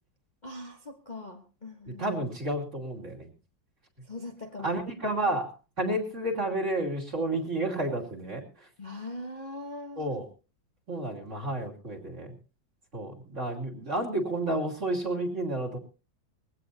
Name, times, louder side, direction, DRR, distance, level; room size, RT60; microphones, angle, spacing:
voice 1, 0.4-2.0 4.0-4.8 8.8-10.2, left 2 dB, 25° left, 2 dB, 1.2 m, -41 dB
voice 2, 1.9-3.3 4.6-5.5 5.8-8.7 10.0-10.3 10.9-12.3 12.9-15.8, right 1 dB, 40° right, 0 dB, 3.1 m, -31 dB
21.5 x 16.5 x 2.8 m, 0.32 s
omnidirectional pair, 2.0 m